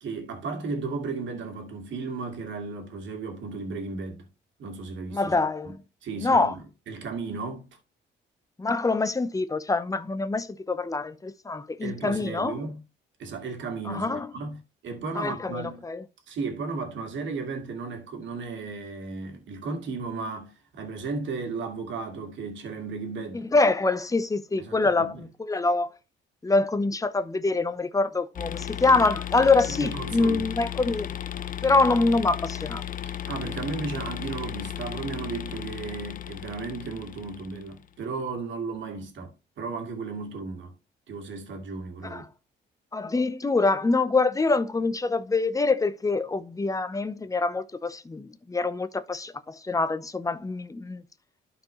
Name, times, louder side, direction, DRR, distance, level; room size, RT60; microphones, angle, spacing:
voice 1, 0.0-4.3 4.6-5.3 5.6-6.6 6.9-7.7 11.8-12.8 13.2-15.8 16.3-23.4 24.6-25.2 29.8-30.4 33.3-40.7 41.1-42.3, right 4 dB, 70° right, 2.2 m, -35 dB
voice 2, 5.1-5.7 6.2-6.6 8.6-12.6 13.9-14.3 15.1-16.0 23.3-25.9 26.4-31.2 31.6-32.8 42.0-42.3 42.9-51.0, left 3 dB, 15° left, 0.8 m, -25 dB
sound 1, 28.4-37.8, left 10 dB, 45° left, 0.5 m, -35 dB
12.5 x 4.6 x 3.1 m
cardioid pair, 90°, 20 cm